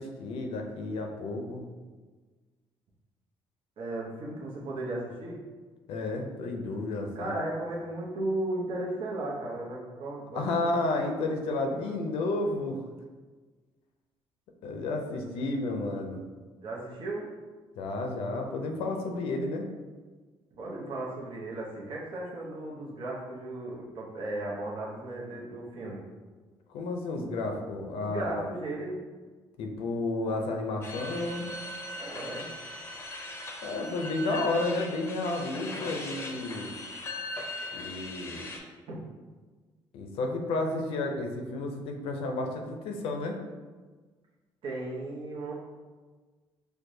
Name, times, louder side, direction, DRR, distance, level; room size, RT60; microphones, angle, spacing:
voice 1, 0.0-1.6 5.9-7.3 10.3-12.8 14.6-16.2 17.8-19.6 26.7-28.5 29.6-31.5 33.6-36.8 37.7-38.4 39.9-43.4, left 2 dB, 80° left, 3 dB, 0.5 m, -31 dB
voice 2, 3.8-5.4 7.1-10.7 16.6-17.3 20.5-26.1 27.9-29.0 32.0-32.5 38.9-39.0 44.6-45.5, right 2 dB, 65° right, -4 dB, 0.8 m, -35 dB
sound 1, 30.8-38.6, left 2 dB, 25° left, 0.6 m, -39 dB
4.6 x 2.2 x 2.7 m, 1.4 s
cardioid pair, 85°, 10 cm